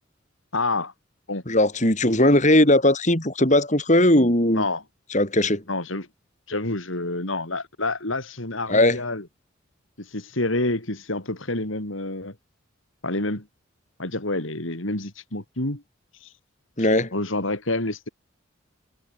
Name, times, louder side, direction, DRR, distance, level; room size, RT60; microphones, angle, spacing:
voice 1, 0.5-0.9 1.3-1.4 4.5-4.8 5.7-6.1 6.5-9.3 10.0-12.4 13.0-13.5 14.0-15.8 16.2-16.3 16.8-18.1, left 2 dB, 75° left, 3.9 m, -28 dB
voice 2, 1.5-4.6 5.1-5.6 8.7-9.0 16.8-17.1, left 1 dB, 35° left, 5.4 m, -18 dB
head